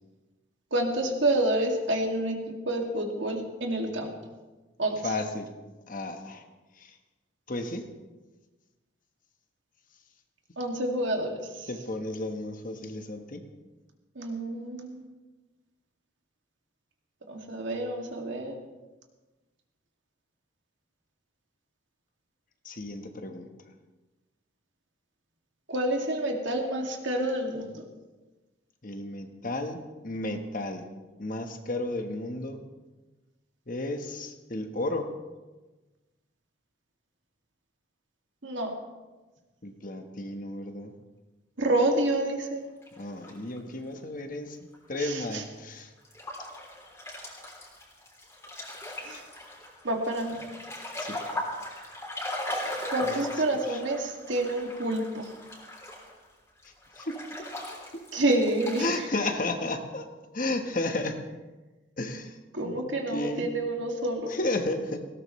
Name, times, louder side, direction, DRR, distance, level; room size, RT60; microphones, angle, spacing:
voice 1, 0.7-2.4 2.7-4.1 4.8-5.1 10.6-11.7 14.2-15.0 17.3-18.6 25.7-27.8 38.4-38.7 41.6-42.6 45.0-45.4 49.0-49.2 49.8-50.4 52.9-55.3 58.1-59.1 62.5-64.3, right 1 dB, 70° right, 1 dB, 2.4 m, -28 dB
voice 2, 5.0-5.5 5.9-6.4 6.8-7.0 7.5-7.9 11.7-13.4 22.6-23.5 28.8-30.9 31.2-32.6 33.7-35.1 39.6-40.9 43.0-45.9 51.0-51.2 53.0-53.2 53.7-53.8 57.0-57.2 58.8-60.1 60.3-61.2 62.0-62.4 62.6-62.8 63.1-63.5 64.3-65.1, left 2 dB, 45° left, 5 dB, 1.3 m, -33 dB
sound 1, 42.8-43.6 44.7-44.8 45.3-45.4 46.0-56.2 56.6-59.0, left 1 dB, 15° left, 3.4 m, -38 dB
19.5 x 17.5 x 3.2 m, 1.2 s
head